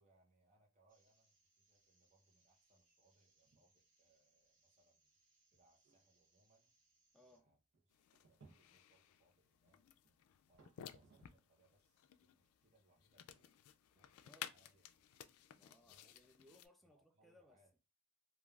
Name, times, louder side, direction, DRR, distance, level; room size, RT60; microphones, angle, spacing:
voice 1, 0.0-5.1 5.5-6.7 7.2-7.6 7.9-9.8 10.4-13.5 13.9-15.1 15.7-16.3 16.8-17.7, right 1 dB, 35° right, 0.7 m, -76 dB
sound 1, 0.9-7.4, right 3 dB, 60° right, 0.9 m, -78 dB
sound 2, 3.4-3.9 4.2-4.3 4.9-5.0 5.5-11.6 12.0-16.3, right 3 dB, 90° right, 0.7 m, -72 dB
voice 2, 7.1-7.5 14.2-14.5 15.5-17.8, left 1 dB, ahead, 0.3 m, -67 dB
sound 3, 7.9-16.7, left 10 dB, 85° left, 0.3 m, -57 dB
3.2 x 2.3 x 2.3 m
head